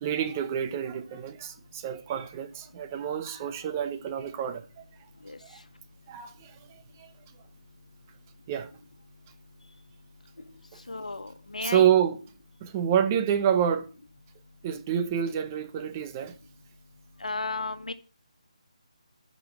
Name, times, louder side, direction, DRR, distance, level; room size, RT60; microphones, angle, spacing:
voice 1, 0.0-4.6 5.4-5.6 6.1-7.1 8.5-8.7 11.6-12.2 12.6-13.9 14.6-16.3, right 9 dB, 20° right, 0.8 m, -28 dB
voice 2, 10.9-11.9 17.2-17.9, left 3 dB, 85° left, 1.3 m, -33 dB
8.1 x 5.4 x 7.5 m
figure-of-eight pair, 160°, 4 cm